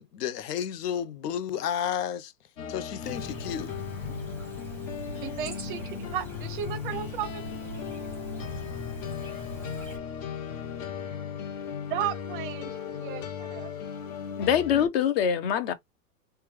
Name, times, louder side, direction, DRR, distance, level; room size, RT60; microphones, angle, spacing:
voice 1, 0.0-2.3 2.7-3.7, left 9 dB, 85° left, 0.6 m, -32 dB
sound 1, 2.6-14.9, left 8 dB, 60° left, 1.0 m, -37 dB
Chirp tweet, 3.0-10.0, equal, 5° left, 0.8 m, -41 dB
voice 2, 5.2-7.8 11.9-13.7, right 10 dB, 35° right, 0.5 m, -35 dB
voice 3, 14.4-15.7, left 8 dB, 40° left, 0.5 m, -24 dB
3.2 x 2.2 x 3.1 m
hypercardioid pair, 145°, 46 cm